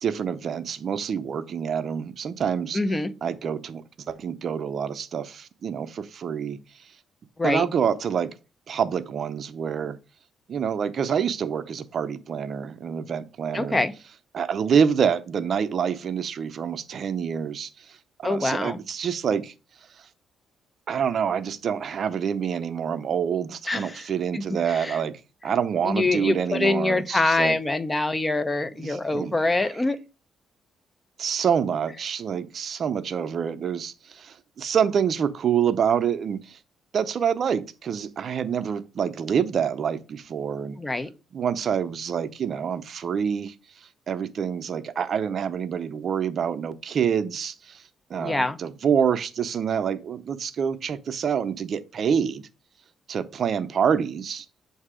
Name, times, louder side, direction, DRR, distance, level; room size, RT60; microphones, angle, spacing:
voice 1, 0.0-2.8 3.2-6.6 7.4-8.3 8.7-10.0 10.5-13.8 14.3-17.7 18.2-19.5 20.9-27.6 28.8-29.4 31.2-36.6 36.9-40.8 41.3-43.5 44.1-47.8 48.1-52.5 53.1-54.5, right 7 dB, 55° right, 0.5 m, -27 dB
voice 2, 2.7-3.1 7.4-7.6 13.5-13.9 18.2-18.8 23.7-24.1 24.3-25.0 25.8-30.0 40.8-41.1 48.2-48.6, left 2 dB, 20° left, 0.7 m, -25 dB
7.4 x 2.7 x 4.9 m
cardioid pair, 90°, 0 cm